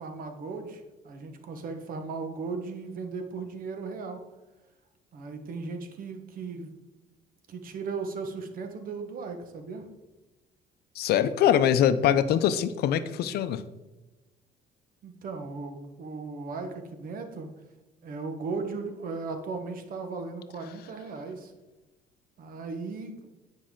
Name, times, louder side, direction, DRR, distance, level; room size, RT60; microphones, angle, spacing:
voice 1, 0.0-4.2 5.1-6.8 7.5-9.8 15.0-17.5 18.0-21.5 22.4-23.1, right 4 dB, 55° right, 6 dB, 1.3 m, -37 dB
voice 2, 10.9-13.6, left 9 dB, 70° left, 13 dB, 0.6 m, -23 dB
9.7 x 5.4 x 3.8 m, 1.1 s
cardioid pair, 110°, 17 cm